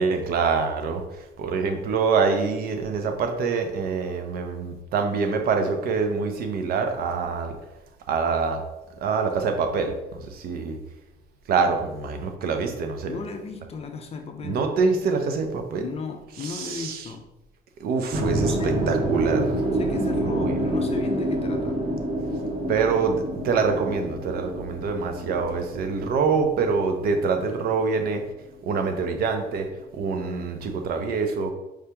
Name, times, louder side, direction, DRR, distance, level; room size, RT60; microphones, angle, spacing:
voice 1, 0.0-7.6 8.1-8.6 9.0-10.8 11.5-13.2 14.4-15.8 16.4-17.1 17.8-19.6 20.2-20.8 22.7-28.2 28.6-29.7 29.9-31.5, right 5 dB, 65° right, 5 dB, 0.7 m, -25 dB
voice 2, 13.1-14.6 15.8-17.2 18.4-18.9 19.7-21.9, left 4 dB, 35° left, 4 dB, 0.5 m, -35 dB
sound 1, 18.1-28.3, right 1 dB, 35° right, 0.8 m, -28 dB
4.9 x 2.9 x 3.4 m, 0.98 s
cardioid pair, 110°, 17 cm